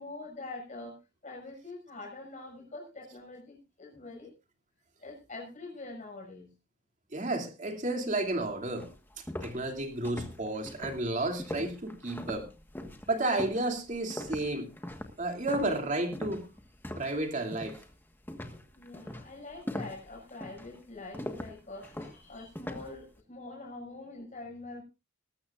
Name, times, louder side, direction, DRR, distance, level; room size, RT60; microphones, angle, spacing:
voice 1, 0.0-4.3 5.0-6.5 18.7-24.8, left 2 dB, 40° left, 0 dB, 6.3 m, -45 dB
voice 2, 7.1-8.9 9.2-12.5 13.1-14.7 15.2-16.5 17.0-17.8, right 2 dB, 40° right, 4 dB, 2.7 m, -32 dB
sound 1, 8.3-8.4 8.8-17.2 17.5-17.9 18.3-23.0, left 1 dB, 10° left, 1.4 m, -41 dB
20.5 x 13.0 x 2.5 m, 0.28 s
head